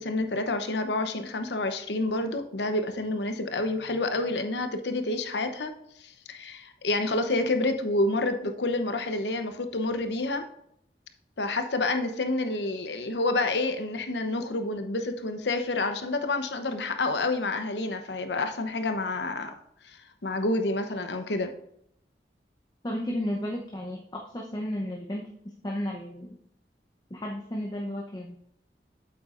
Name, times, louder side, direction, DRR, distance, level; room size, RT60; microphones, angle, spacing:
voice 1, 0.0-5.7 6.0-10.5 11.4-19.5 20.2-21.5, left 2 dB, 85° left, 7 dB, 0.9 m, -28 dB
voice 2, 22.8-25.3 25.6-26.3 27.1-28.4, left 1 dB, 25° left, -1 dB, 0.8 m, -33 dB
8.4 x 7.7 x 2.5 m, 0.73 s
head